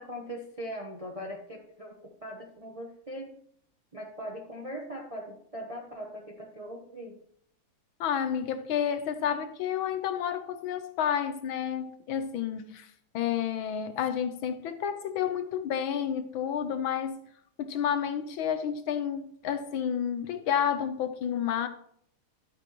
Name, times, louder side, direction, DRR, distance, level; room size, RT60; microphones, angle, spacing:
voice 1, 0.0-3.4 3.9-7.2, equal, 30° right, 0.6 m, -40 dB
voice 2, 8.0-12.9 13.1-17.2 17.6-21.7, left 8 dB, 75° left, 1.5 m, -30 dB
11.5 x 8.9 x 3.0 m
omnidirectional pair, 2.4 m